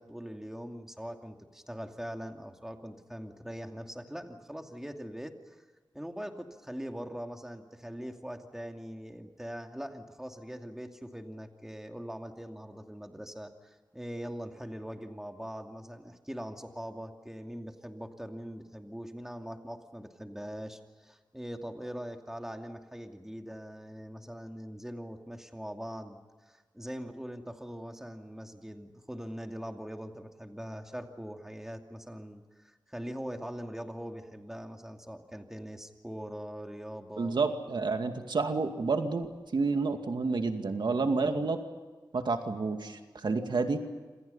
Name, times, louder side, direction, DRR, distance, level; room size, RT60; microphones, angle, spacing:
voice 1, 0.0-5.6 5.9-37.4 41.3-41.5, equal, 5° right, 4 dB, 2.5 m, -42 dB
voice 2, 37.2-41.6 42.1-43.8, right 4 dB, 85° right, 5 dB, 2.3 m, -29 dB
28.0 x 27.0 x 5.6 m, 1.4 s
wide cardioid pair, 85°, 8 cm